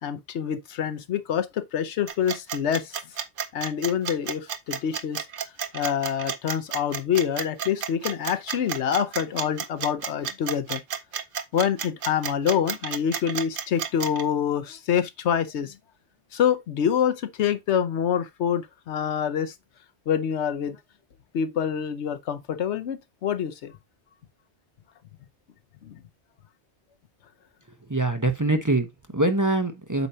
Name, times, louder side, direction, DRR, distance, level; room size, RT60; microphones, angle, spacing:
voice 1, 0.0-3.0 3.5-5.2 5.7-10.8 11.5-15.8 16.3-19.5 20.1-20.8 21.3-23.7 25.8-26.0, left 8 dB, 85° left, 1.0 m, -26 dB
sound 1, 2.1-14.2, right 7 dB, 55° right, 0.8 m, -31 dB
voice 2, 27.9-30.1, right 2 dB, 20° right, 0.7 m, -24 dB
8.2 x 2.7 x 5.5 m
omnidirectional pair, 1.1 m